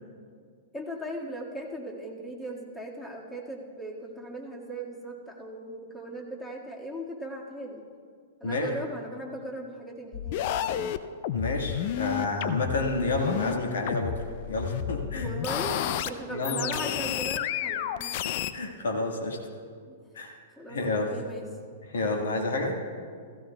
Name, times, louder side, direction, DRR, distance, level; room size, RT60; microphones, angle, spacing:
voice 1, 0.7-7.9 8.4-10.7 15.2-18.2 19.8-20.0 20.6-21.5 22.1-22.4, right 1 dB, 10° left, -1 dB, 1.8 m, -38 dB
sound 1, 10.1-13.5 13.9-16.1 16.4-18.5, left 10 dB, 50° left, 0.4 m, -31 dB
voice 2, 11.3-15.3 16.3-16.7 18.0-19.4 20.1-20.3 20.7-21.1 21.9-22.8, left 2 dB, 75° left, 1 dB, 1.6 m, -30 dB
16.0 x 15.0 x 2.3 m, 2.1 s
hypercardioid pair, 110°, 0 cm